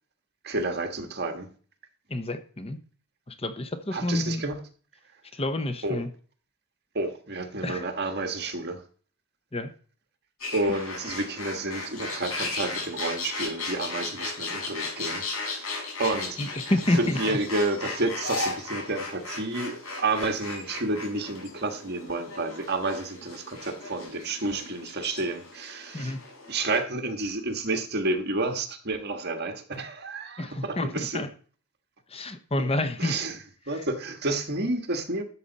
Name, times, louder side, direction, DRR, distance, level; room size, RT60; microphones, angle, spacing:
voice 1, 0.4-1.5 3.9-4.6 5.8-6.0 6.9-8.8 10.5-15.7 16.0-16.4 16.9-26.1 26.5-31.3 33.0-33.4 33.7-35.2, right 2 dB, 45° right, 1.6 m, -30 dB
voice 2, 2.1-2.8 3.3-4.4 5.3-6.1 7.6-7.8 9.5-9.7 16.4-17.4 25.9-26.2 30.4-31.3 32.1-33.1 33.7-33.8, left 1 dB, 25° left, 0.9 m, -29 dB
sound 1, 10.4-26.8, left 3 dB, 75° left, 5.6 m, -36 dB
13.0 x 7.8 x 4.1 m
head